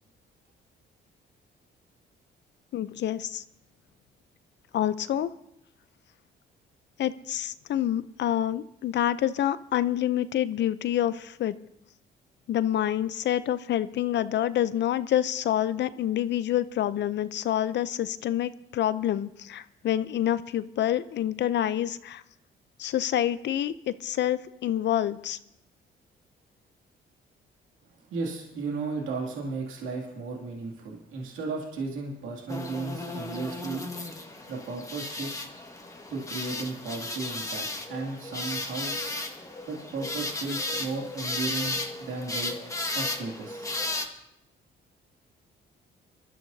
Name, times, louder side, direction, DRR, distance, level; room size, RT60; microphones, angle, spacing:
voice 1, 2.7-3.4 4.7-5.3 7.0-11.5 12.5-22.2 22.8-25.4, left 11 dB, 65° left, 14 dB, 0.6 m, -27 dB
voice 2, 28.0-35.5 36.1-39.0 39.7-42.5 42.9-43.7, right 3 dB, 85° right, -1 dB, 2.4 m, -35 dB
sound 1, 32.5-44.1, left 2 dB, 15° left, 1.6 m, -34 dB
25.5 x 12.5 x 2.7 m, 0.79 s
cardioid pair, 90°, 20 cm